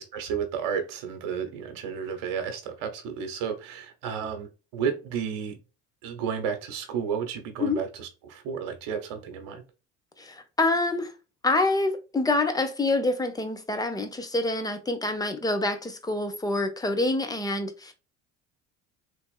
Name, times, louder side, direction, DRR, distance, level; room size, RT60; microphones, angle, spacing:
voice 1, 0.1-5.6 6.0-9.6, right 7 dB, 65° right, 1.1 m, -32 dB
voice 2, 10.2-11.1 11.4-17.9, left 2 dB, 10° left, 0.9 m, -26 dB
3.4 x 2.9 x 2.4 m
hypercardioid pair, 65°, 37 cm